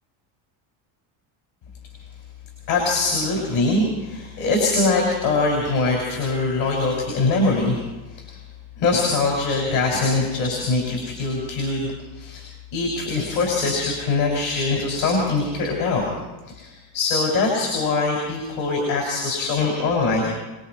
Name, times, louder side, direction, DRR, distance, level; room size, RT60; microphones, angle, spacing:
voice 1, 2.7-7.8 8.1-8.4 8.8-12.4 12.7-16.0 16.5-20.2, left 3 dB, 70° left, 0 dB, 6.3 m, -22 dB
27.5 x 20.5 x 4.8 m, 1.1 s
cardioid pair, 120°, 50 cm